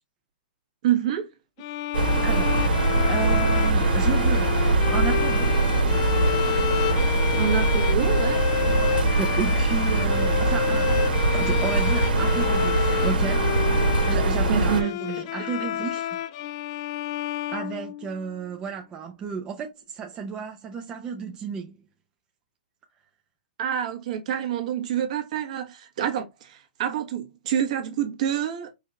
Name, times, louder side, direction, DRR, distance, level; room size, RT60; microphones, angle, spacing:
voice 1, 0.8-1.3 7.4-8.4 14.5-14.9 23.6-28.7, right 9 dB, 50° right, 1.3 m, -27 dB
sound 1, 1.6-18.4, left 11 dB, 40° left, 0.4 m, -30 dB
sound 2, 1.9-14.8, right 2 dB, 90° right, 1.7 m, -22 dB
voice 2, 2.2-2.6 3.1-5.6 8.6-13.8 14.1-16.2 17.5-21.8, right 6 dB, 15° right, 0.6 m, -33 dB
4.8 x 2.7 x 3.4 m
hypercardioid pair, 155°, 5 cm